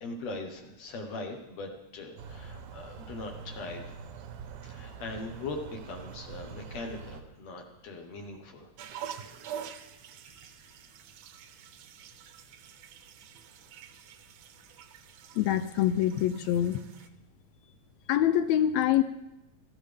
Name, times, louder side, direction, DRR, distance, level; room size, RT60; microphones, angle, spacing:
voice 1, 0.0-3.9 4.6-8.7 10.4-10.5, left 2 dB, 65° left, 3 dB, 2.2 m, -40 dB
sound 1, 2.2-7.2, right 6 dB, 90° right, 2.5 m, -44 dB
sound 2, 8.8-17.1, right 9 dB, 70° right, 1.6 m, -46 dB
voice 2, 15.3-16.8 18.1-19.0, left 11 dB, 80° left, 12 dB, 1.7 m, -25 dB
16.0 x 14.5 x 3.4 m, 0.93 s
omnidirectional pair, 3.6 m